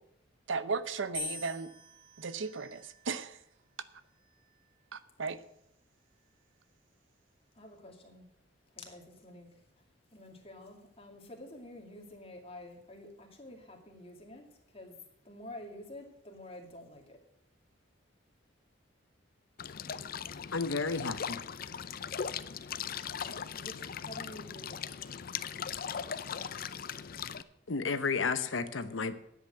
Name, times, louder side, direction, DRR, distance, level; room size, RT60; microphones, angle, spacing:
voice 1, 0.5-1.7 2.2-3.4 4.9-5.4, right 4 dB, 80° right, 14 dB, 0.7 m, -35 dB
sound 1, 1.1-3.4 4.2-4.7, left 2 dB, 25° right, 2.1 m, -44 dB
voice 2, 7.6-8.3 8.7-9.6 10.1-15.0 15.2-17.2 23.5-24.8, left 1 dB, 30° left, 2 dB, 2.3 m, -49 dB
sound 2, 19.6-27.4, left 7 dB, 50° left, 0.5 m, -39 dB
voice 3, 20.5-21.4 27.7-29.1, left 4 dB, 85° left, 11 dB, 0.9 m, -32 dB
10.5 x 8.2 x 7.8 m, 0.76 s
head